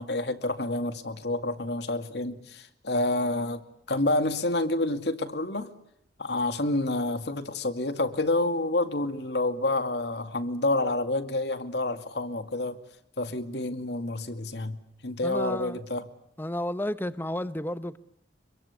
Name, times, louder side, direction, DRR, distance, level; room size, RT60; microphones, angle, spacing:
voice 1, 0.0-3.6 3.9-5.7 6.2-12.8 13.2-16.1, left 2 dB, 65° left, 2.3 m, -28 dB
voice 2, 15.2-15.8 16.4-18.0, left 1 dB, 10° left, 1.0 m, -32 dB
25.5 x 23.0 x 8.5 m
head